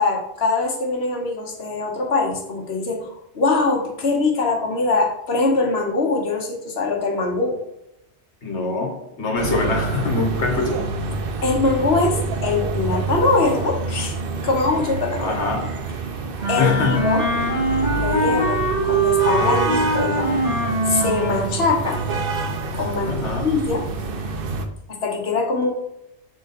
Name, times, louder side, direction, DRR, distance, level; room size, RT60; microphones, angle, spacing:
voice 1, 0.0-7.6 11.4-12.2 12.4-14.2 14.4-15.4 16.5-17.2 17.9-20.3 20.9-22.0 22.7-23.9 24.9-25.7, left 3 dB, 65° left, 1.4 m, -22 dB
voice 2, 8.4-10.8 15.2-15.7 16.6-17.1 23.1-23.5, left 4 dB, 85° left, 1.6 m, -24 dB
sound 1, 9.4-24.7, right 4 dB, 60° right, 0.9 m, -27 dB
Wind instrument woodwind instrument, 16.4-21.6, right 2 dB, 85° right, 2.6 m, -22 dB
6.1 x 3.9 x 4.1 m
omnidirectional pair, 1.1 m